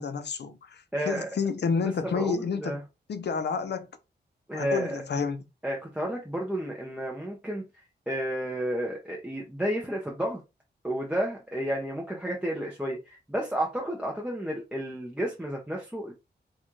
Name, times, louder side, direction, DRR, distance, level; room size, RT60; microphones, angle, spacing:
voice 1, 0.0-2.8 3.1-3.9 4.5-5.4, left 5 dB, 70° left, 0.7 m, -30 dB
voice 2, 0.9-1.3 2.1-2.8 4.5-5.0 5.6-7.6 8.1-10.4 10.8-16.1, equal, 5° right, 0.8 m, -31 dB
4.3 x 2.5 x 4.6 m
wide cardioid pair, 175°, 18 cm